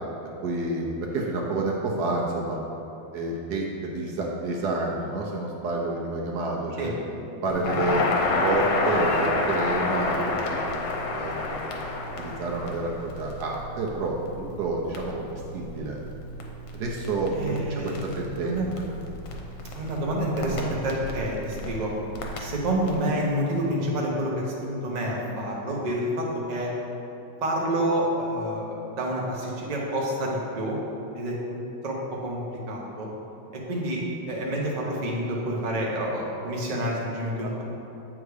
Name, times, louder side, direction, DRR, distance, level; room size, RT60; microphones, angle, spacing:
voice 1, 0.4-0.8 1.1-2.6 3.1-6.9 7.4-10.6 11.1-11.6 12.2-16.0 16.7-18.6, right 2 dB, 70° right, -1 dB, 1.1 m, -29 dB
Crackle, 7.5-23.0, left 2 dB, 75° left, 1.4 m, -30 dB
voice 2, 17.3-18.7 19.7-21.9 22.4-26.7 27.4-30.8 31.1-33.1 33.5-37.6, right 1 dB, 35° right, -3 dB, 0.7 m, -28 dB
8.0 x 3.6 x 4.8 m, 3.0 s
omnidirectional pair, 2.0 m